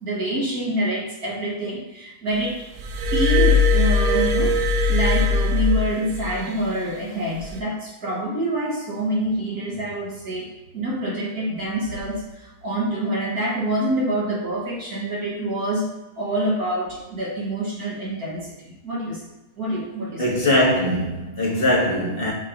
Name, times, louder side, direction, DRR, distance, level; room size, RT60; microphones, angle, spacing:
voice 1, 0.0-2.7 3.1-4.6 4.9-15.9 16.2-19.2 19.6-20.2, right 1 dB, 50° right, 1.7 m, -26 dB
Glass, 2.8-6.4 7.4-7.6, left 3 dB, 65° right, 1.1 m, -20 dB
voice 2, 20.2-22.3, left 1 dB, 30° left, 1.5 m, -21 dB
5.9 x 3.2 x 5.0 m
omnidirectional pair, 2.2 m